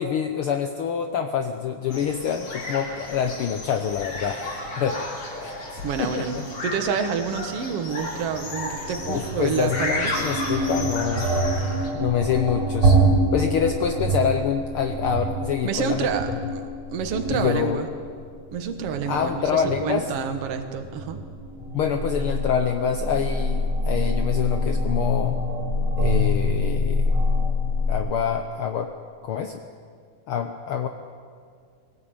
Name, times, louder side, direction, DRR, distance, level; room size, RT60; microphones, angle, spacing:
voice 1, 0.0-4.4 4.8-5.0 5.4-6.4 9.1-11.3 11.9-13.0 13.3-16.1 17.3-17.8 19.1-20.1 21.7-25.4 26.0-27.2 27.9-28.9 29.2-29.6 30.3-30.9, left 7 dB, 80° left, 6 dB, 1.2 m, -26 dB
sound 1, 1.9-11.9, left 2 dB, 55° left, 4.6 m, -33 dB
voice 2, 5.8-6.4 6.6-10.2 15.6-17.9 18.5-21.2, right 6 dB, 55° right, 6 dB, 2.2 m, -28 dB
sound 2, 8.3-27.9, equal, 25° right, 5.0 m, -26 dB
21.0 x 18.0 x 8.9 m, 2.1 s
omnidirectional pair, 3.7 m